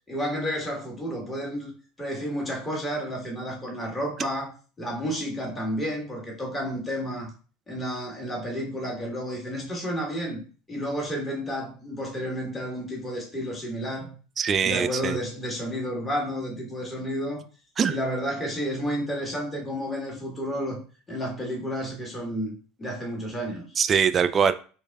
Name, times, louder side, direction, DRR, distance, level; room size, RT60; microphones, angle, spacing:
voice 1, 0.1-1.7 2.0-7.3 7.7-10.4 10.7-14.1 14.6-17.4 17.9-20.8 21.1-23.6, equal, 20° left, -1 dB, 1.4 m, -31 dB
voice 2, 14.4-15.2 17.8-17.9 23.8-24.5, right 7 dB, 35° right, 11 dB, 0.3 m, -22 dB
5.3 x 2.1 x 2.3 m, 0.38 s
hypercardioid pair, 80°, 0 cm